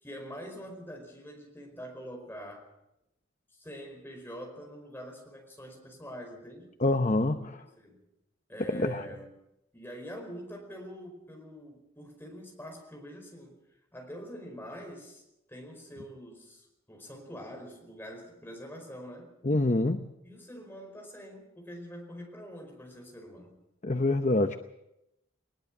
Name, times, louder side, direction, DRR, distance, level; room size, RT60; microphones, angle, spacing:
voice 1, 0.0-2.7 3.5-6.7 7.2-8.0 8.5-9.3 9.7-13.6 13.9-15.2 15.5-19.3 20.2-23.6, equal, 10° left, 1 dB, 4.9 m, -44 dB
voice 2, 6.8-7.6 8.7-9.0 19.4-20.1 23.8-24.6, left 2 dB, 35° left, 8 dB, 0.7 m, -26 dB
21.0 x 20.5 x 6.1 m, 0.87 s
head